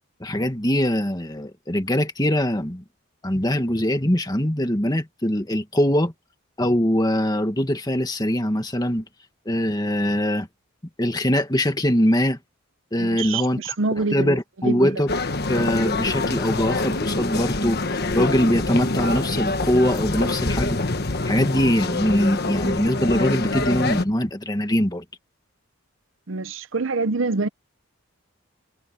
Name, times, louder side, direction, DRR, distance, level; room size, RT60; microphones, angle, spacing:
voice 1, 0.2-2.8 3.2-6.1 6.6-9.0 9.5-10.5 11.0-12.4 12.9-13.7 14.1-15.1 15.5-20.8 21.3-25.0, equal, 20° left, 1.9 m, -22 dB
voice 2, 13.0-14.4 14.6-14.9 26.3-27.5, right 3 dB, 60° right, 0.7 m, -25 dB
sound 1, 15.1-24.0, left 2 dB, 45° left, 1.4 m, -25 dB
head